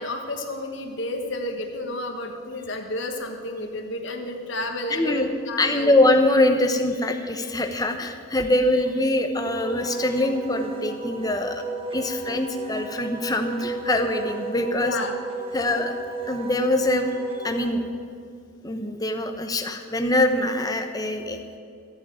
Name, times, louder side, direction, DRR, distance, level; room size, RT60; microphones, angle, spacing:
voice 1, 0.0-5.9 14.8-15.1, left 2 dB, 60° left, 3 dB, 1.3 m, -31 dB
voice 2, 4.9-5.3 5.6-11.6 11.9-15.0 15.5-16.0 16.3-17.1 17.4-17.9 18.6-21.6, left 1 dB, 20° left, 5 dB, 0.9 m, -23 dB
Wind instrument woodwind instrument, 9.4-17.7, right 3 dB, 25° right, 1.1 m, -34 dB
14.0 x 8.7 x 8.5 m, 2.3 s
head